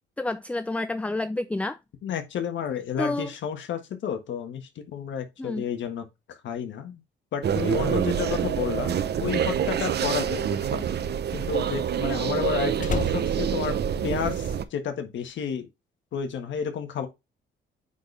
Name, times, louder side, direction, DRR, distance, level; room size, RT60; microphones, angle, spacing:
voice 1, 0.2-1.8 3.0-3.3 5.4-5.7, left 2 dB, 5° left, 0.4 m, -29 dB
voice 2, 2.0-7.0 7.3-10.9 11.3-13.8 14.0-15.7 16.1-17.1, left 7 dB, 70° left, 1.5 m, -31 dB
sound 1, 7.4-14.6, right 8 dB, 55° right, 0.9 m, -26 dB
Slam, 10.5-14.6 14.9-15.3, left 5 dB, 40° left, 1.0 m, -36 dB
9.2 x 4.2 x 3.3 m
cardioid pair, 90°, 20 cm